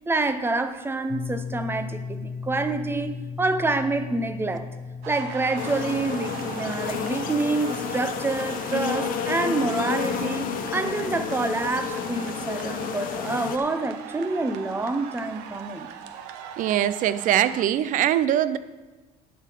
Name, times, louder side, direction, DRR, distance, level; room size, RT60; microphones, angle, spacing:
voice 1, 0.1-4.7 5.1-15.9, right 3 dB, 15° right, 10 dB, 0.7 m, -27 dB
sound 1, 1.1-11.7, left 5 dB, 25° left, 0.4 m, -38 dB
sound 2, 5.0-17.6, right 8 dB, 85° right, 0.8 m, -40 dB
sound 3, 5.6-13.6, left 8 dB, 60° left, 0.8 m, -31 dB
voice 2, 16.6-18.6, right 11 dB, 55° right, 15 dB, 0.5 m, -22 dB
11.0 x 6.7 x 5.1 m, 1.2 s
cardioid pair, 120°, 16 cm